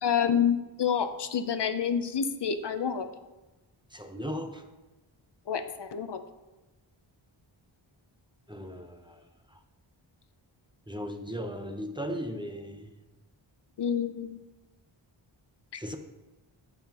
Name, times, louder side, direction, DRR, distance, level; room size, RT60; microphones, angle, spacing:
voice 1, 0.0-3.1 5.5-6.2 13.8-14.4, left 7 dB, 60° left, 9 dB, 0.7 m, -28 dB
voice 2, 3.9-4.6 8.5-9.2 9.5-9.6 10.9-12.9 15.7-16.0, equal, 10° right, 4 dB, 0.7 m, -37 dB
15.0 x 5.7 x 2.9 m, 1.1 s
wide cardioid pair, 105°, 48 cm